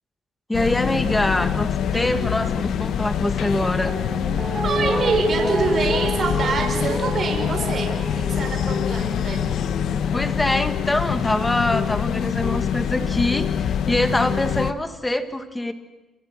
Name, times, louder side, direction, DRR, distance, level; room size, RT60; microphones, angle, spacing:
sound 1, 0.5-14.7, left 8 dB, 75° left, 1.4 m, -25 dB
voice 1, 0.5-4.0 10.1-15.7, left 1 dB, 15° left, 9 dB, 2.3 m, -24 dB
Guitar, 3.9-10.9 11.2-11.3, right 2 dB, 30° right, 4.1 m, -30 dB
voice 2, 4.6-9.5, right 4 dB, 50° right, 2 dB, 6.8 m, -26 dB
29.5 x 27.5 x 6.1 m, 1.0 s
cardioid pair, 90°, 0 cm